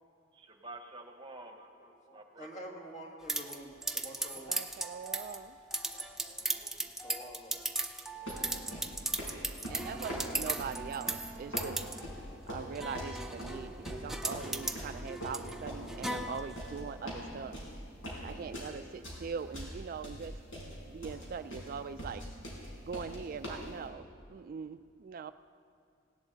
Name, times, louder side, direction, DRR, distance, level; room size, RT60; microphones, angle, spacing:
voice 1, 0.3-1.6 2.1-2.5, right 2 dB, 25° right, 5 dB, 1.0 m, -49 dB
voice 2, 1.6-4.6 5.9-7.6 8.0-8.3, equal, 35° left, 1 dB, 1.9 m, -49 dB
sound 1, 3.3-16.8, right 2 dB, ahead, 0.6 m, -38 dB
voice 3, 4.5-5.6 9.7-11.8 12.5-17.6 18.2-20.4 20.8-22.2 22.8-25.3, right 6 dB, 45° right, 11 dB, 0.3 m, -42 dB
sound 2, 8.3-23.7, equal, 80° left, 4.6 m, -42 dB
18.5 x 17.0 x 4.0 m, 2.3 s
head